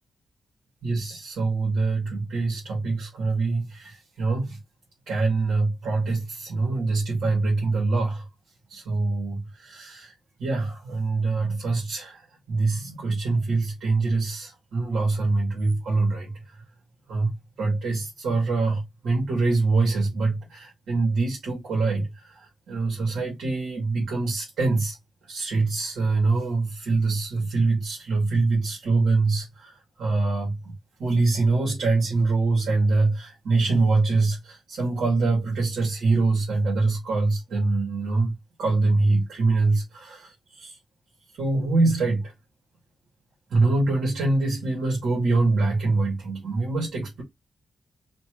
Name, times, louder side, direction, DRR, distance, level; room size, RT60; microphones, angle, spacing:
voice 1, 0.8-4.6 5.1-8.2 8.7-10.1 10.4-12.2 12.5-16.3 17.1-17.3 17.6-22.3 22.7-25.0 25.3-29.7 30.0-30.7 31.0-38.3 38.6-40.7 41.4-42.2 43.5-47.2, right 3 dB, 85° right, 2.0 m, -24 dB
4.3 x 2.8 x 3.0 m
wide cardioid pair, 150°, 0 cm